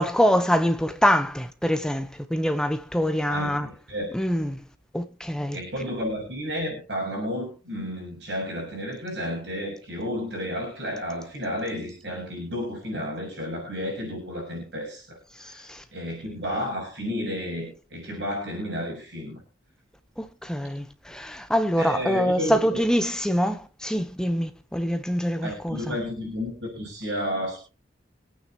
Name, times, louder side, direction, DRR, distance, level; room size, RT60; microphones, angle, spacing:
voice 1, 0.0-3.7 4.1-4.6 4.9-5.6 15.7-15.8 20.2-25.9, equal, 5° left, 0.9 m, -25 dB
voice 2, 3.3-4.1 5.5-19.4 21.8-22.6 25.4-27.6, equal, 60° right, 7.2 m, -32 dB
26.5 x 9.0 x 3.0 m
head